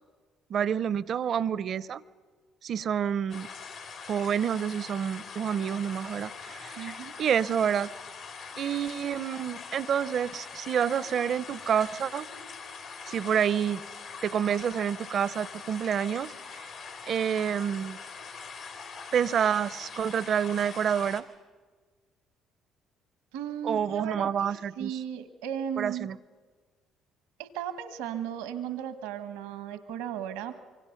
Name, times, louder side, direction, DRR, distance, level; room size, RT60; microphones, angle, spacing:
voice 1, 0.5-2.0 2.6-3.5 4.1-7.9 8.6-12.3 13.1-13.8 14.2-16.7 17.1-18.0 19.1-21.2 23.6-25.0 25.8-26.2, right 8 dB, 60° right, 19 dB, 0.6 m, -28 dB
sound 1, 3.3-21.2, left 5 dB, 75° left, 2.6 m, -43 dB
voice 2, 6.8-7.1 23.3-26.1 27.4-30.6, right 9 dB, 85° right, 11 dB, 1.0 m, -36 dB
25.0 x 24.0 x 5.8 m, 1.5 s
supercardioid pair, 60°, 0 cm